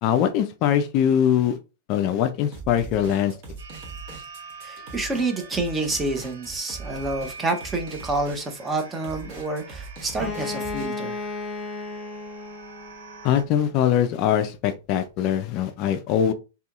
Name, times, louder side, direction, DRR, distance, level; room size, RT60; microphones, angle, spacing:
voice 1, 0.0-1.6 1.9-3.3 13.2-16.3, left 9 dB, 45° left, 0.3 m, -22 dB
sound 1, 2.5-10.9, right 4 dB, 45° right, 1.0 m, -40 dB
sound 2, 3.6-13.4, right 4 dB, 70° right, 0.6 m, -45 dB
voice 2, 4.6-11.2, right 2 dB, 15° right, 0.6 m, -28 dB
Bowed string instrument, 10.1-13.8, left 3 dB, 25° left, 1.1 m, -34 dB
2.7 x 2.6 x 2.3 m
figure-of-eight pair, 100°, 0 cm